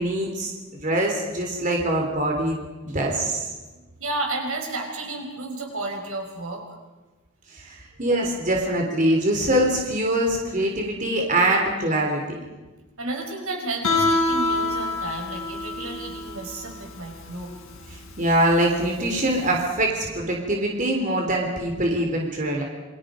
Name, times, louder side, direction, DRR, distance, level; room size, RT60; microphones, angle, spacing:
voice 1, 0.0-3.5 7.5-12.2 17.9-22.6, right 1 dB, 35° right, 1 dB, 3.5 m, -23 dB
voice 2, 4.0-6.6 13.0-17.5, right 2 dB, 90° right, 2 dB, 5.7 m, -32 dB
Guitar, 13.8-19.5, left 2 dB, 80° left, 5.4 m, -27 dB
28.0 x 24.0 x 5.2 m, 1.2 s
head